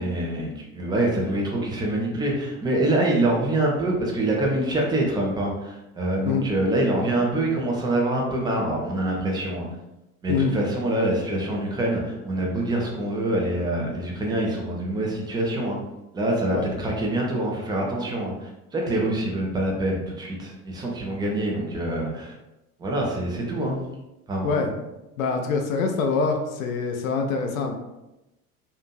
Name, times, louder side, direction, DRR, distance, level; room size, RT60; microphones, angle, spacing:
voice 1, 0.0-9.7 10.2-15.8 16.1-22.3 22.8-23.8 24.3-24.5, right 1 dB, 10° right, -2 dB, 0.4 m, -25 dB
voice 2, 25.2-27.7, left 4 dB, 65° left, 3 dB, 0.5 m, -24 dB
2.7 x 2.5 x 2.2 m, 0.96 s
figure-of-eight pair, 65°, 44 cm